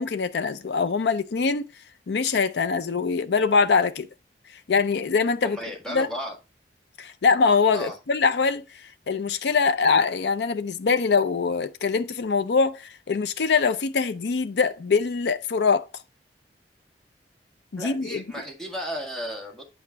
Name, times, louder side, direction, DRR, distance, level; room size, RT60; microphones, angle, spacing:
voice 1, 0.0-1.6 2.1-4.1 4.7-5.6 5.9-6.1 7.0-15.9 17.7-18.2, left 5 dB, 70° left, 0.5 m, -23 dB
voice 2, 5.4-6.3 7.7-8.0 17.8-19.6, equal, 5° left, 1.7 m, -34 dB
8.6 x 5.0 x 3.4 m
head